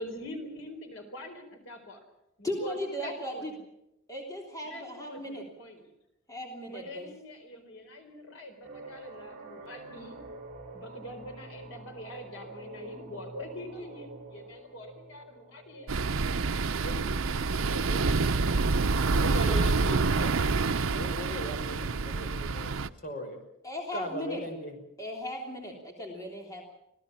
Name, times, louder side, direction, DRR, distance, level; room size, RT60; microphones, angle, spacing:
voice 1, 0.0-2.0 2.4-3.5 4.6-5.9 6.7-10.2 10.7-15.9 16.8-17.3 17.5-18.8, equal, 70° left, 5 dB, 4.2 m, -44 dB
voice 2, 2.4-3.5 4.1-5.4 6.3-7.1 23.6-24.4 25.0-26.6, left 1 dB, 15° left, 0 dB, 3.2 m, -37 dB
sound 1, 8.6-18.2, right 2 dB, 35° right, 6.9 m, -47 dB
sound 2, 15.9-22.9, right 4 dB, 80° right, 0.7 m, -27 dB
voice 3, 19.2-22.8 23.0-23.4 23.9-24.8, equal, 40° left, 4 dB, 5.4 m, -38 dB
26.0 x 17.0 x 7.2 m, 0.85 s
head